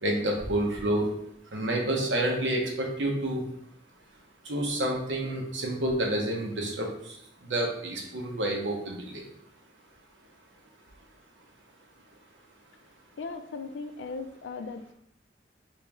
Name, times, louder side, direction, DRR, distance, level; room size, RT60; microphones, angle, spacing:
voice 1, 0.0-1.1 1.5-3.4 4.4-7.2 7.5-9.2, right 1 dB, 85° right, 0 dB, 0.9 m, -29 dB
voice 2, 13.2-14.9, left 4 dB, 85° left, 8 dB, 0.4 m, -38 dB
3.1 x 3.1 x 3.5 m, 0.73 s
head